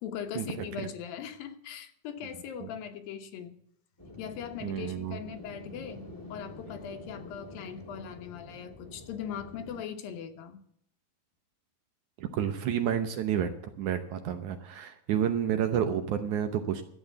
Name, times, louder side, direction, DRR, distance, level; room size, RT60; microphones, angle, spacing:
voice 1, 0.0-3.6 4.2-10.6, left 8 dB, 75° left, 2.9 m, -40 dB
sound 1, 4.0-9.8, left 2 dB, 10° left, 1.5 m, -47 dB
voice 2, 4.6-5.2 12.2-13.5 13.8-16.8, right 9 dB, 70° right, 2.1 m, -30 dB
13.0 x 8.6 x 7.8 m
omnidirectional pair, 4.2 m